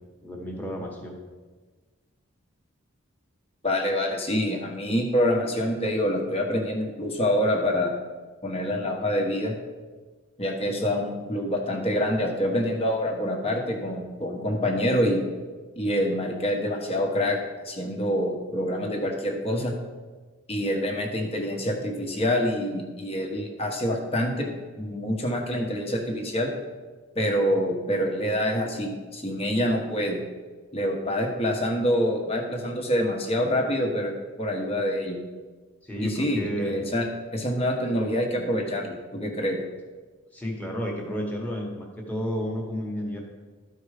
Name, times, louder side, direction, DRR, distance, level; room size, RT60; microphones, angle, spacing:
voice 1, 0.2-1.2 35.8-36.8 40.3-43.2, equal, 5° left, -1 dB, 1.3 m, -31 dB
voice 2, 3.6-7.9 8.4-9.6 10.4-15.2 15.8-19.7 20.5-24.5 24.8-26.5 27.1-30.2 30.7-34.1 34.4-35.2 36.0-37.0 37.3-39.6, equal, 25° left, 1 dB, 1.0 m, -26 dB
12.5 x 4.6 x 4.9 m, 1.4 s
head